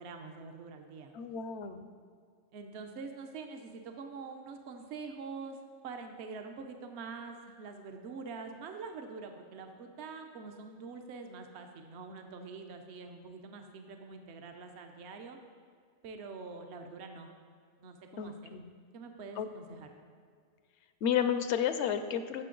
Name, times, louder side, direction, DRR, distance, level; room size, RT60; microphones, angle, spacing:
voice 1, 0.0-1.1 2.5-5.6 5.8-15.4 16.0-17.3 17.8-18.5 18.9-19.9, right 4 dB, 70° right, 5 dB, 1.0 m, -45 dB
voice 2, 1.1-1.9 18.2-18.7 19.4-19.9 21.0-22.4, left 8 dB, 80° left, 10 dB, 0.9 m, -32 dB
14.0 x 5.8 x 3.8 m, 2.1 s
omnidirectional pair, 1.2 m